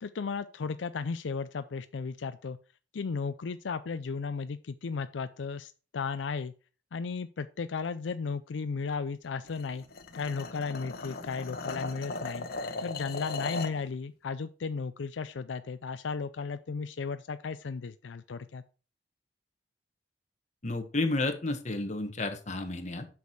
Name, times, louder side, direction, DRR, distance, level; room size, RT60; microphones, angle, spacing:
voice 1, 0.0-2.6 2.9-6.5 6.9-9.9 10.1-12.5 12.8-18.6, left 5 dB, 85° left, 12 dB, 0.5 m, -35 dB
sound 1, 9.4-13.8, left 3 dB, 60° left, 1.1 m, -38 dB
voice 2, 20.6-23.1, left 2 dB, 40° left, 6 dB, 1.4 m, -31 dB
8.4 x 6.1 x 4.8 m, 0.36 s
head